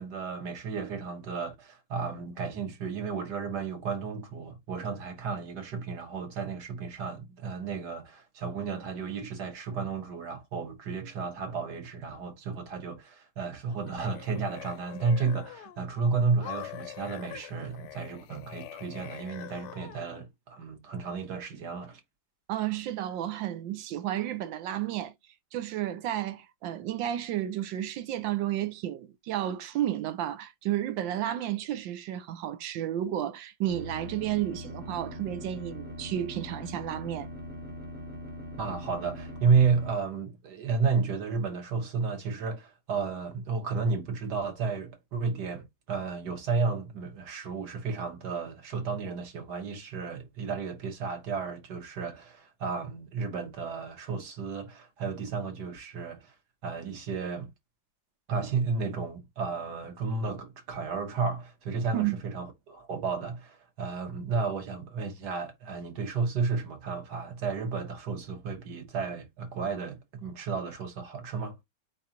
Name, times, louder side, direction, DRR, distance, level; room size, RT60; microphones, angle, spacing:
voice 1, 0.0-22.0 38.6-56.4 56.6-57.5 58.3-71.6, right 5 dB, 65° right, 1.7 m, -32 dB
sound 1, 13.7-15.9 16.4-20.3, left 14 dB, 70° left, 1.2 m, -44 dB
voice 2, 22.5-25.1 25.5-37.3 61.9-62.2, right 12 dB, 85° right, 1.4 m, -32 dB
sound 2, 33.7-39.9, equal, 10° right, 0.4 m, -41 dB
4.7 x 3.9 x 2.8 m
omnidirectional pair, 2.0 m